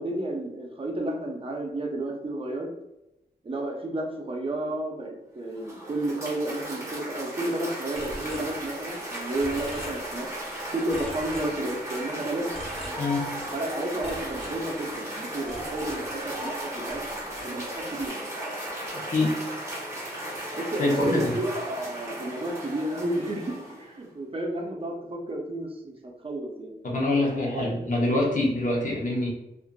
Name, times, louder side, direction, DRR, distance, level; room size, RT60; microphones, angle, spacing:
voice 1, 0.0-2.7 3.4-10.3 10.7-12.5 13.5-17.6 17.9-18.3 20.6-26.8 27.5-27.8, right 1 dB, 35° right, 0 dB, 0.5 m, -32 dB
Cheering / Applause, 5.4-24.0, right 1 dB, 20° right, 1.1 m, -36 dB
sound 1, 8.0-9.1 9.4-10.5 10.9-12.1 12.5-13.7 14.0-16.6 16.9-18.1, equal, 5° left, 1.4 m, -43 dB
voice 2, 20.5-21.4 26.8-29.3, left 2 dB, 50° left, -2 dB, 0.8 m, -25 dB
2.5 x 2.4 x 2.2 m, 0.90 s
wide cardioid pair, 100°, 17 cm